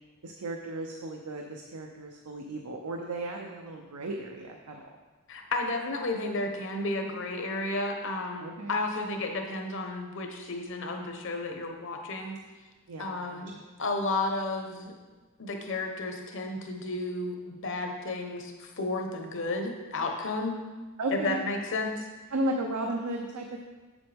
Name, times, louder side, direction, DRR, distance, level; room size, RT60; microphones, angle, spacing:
voice 1, 0.2-4.9 8.4-8.7 12.9-13.6 21.0-21.4 22.3-23.6, right 1 dB, 90° right, 2 dB, 0.7 m, -34 dB
voice 2, 5.3-12.4 13.0-13.5 13.8-14.9 15.4-20.6 21.1-22.0, left 2 dB, 55° left, 3 dB, 1.0 m, -32 dB
7.9 x 7.4 x 3.5 m, 1.3 s
head